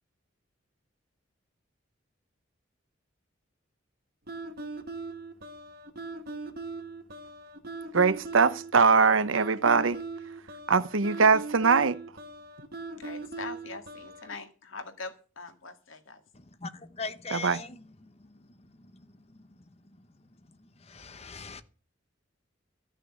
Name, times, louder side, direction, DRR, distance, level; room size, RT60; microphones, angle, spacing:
sound 1, 4.3-14.4, right 3 dB, 50° right, 1.8 m, -40 dB
voice 1, 7.9-10.0 10.7-12.0 17.3-17.6, right 5 dB, 80° right, 0.9 m, -22 dB
voice 2, 13.0-16.2, left 3 dB, 80° left, 2.0 m, -42 dB
voice 3, 16.6-17.8 20.8-21.6, left 4 dB, 30° left, 1.0 m, -39 dB
13.5 x 6.7 x 8.0 m
head